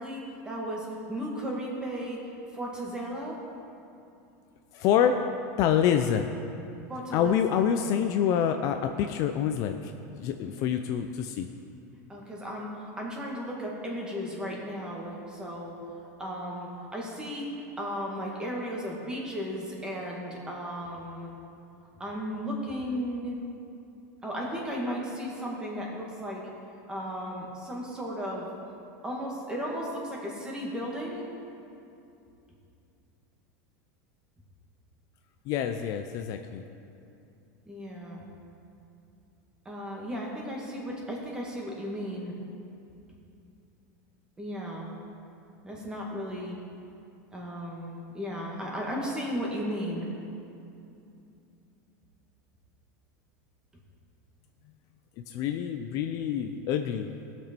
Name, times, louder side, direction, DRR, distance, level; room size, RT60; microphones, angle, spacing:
voice 1, 0.0-3.4 6.9-7.7 10.4-10.7 12.1-15.8 16.2-17.5 17.8-21.3 22.0-23.3 24.2-26.5 26.9-28.5 29.0-31.2 37.6-38.2 39.6-42.3 44.4-44.9 45.6-46.6 47.3-50.1, equal, 10° right, -2 dB, 1.7 m, -35 dB
voice 2, 4.7-5.2 5.6-6.3 7.1-9.9 10.2-11.5 35.5-36.6 55.3-57.1, left 9 dB, 40° left, 7 dB, 0.5 m, -26 dB
18.0 x 6.1 x 4.4 m, 2.7 s
supercardioid pair, 160°, 8 cm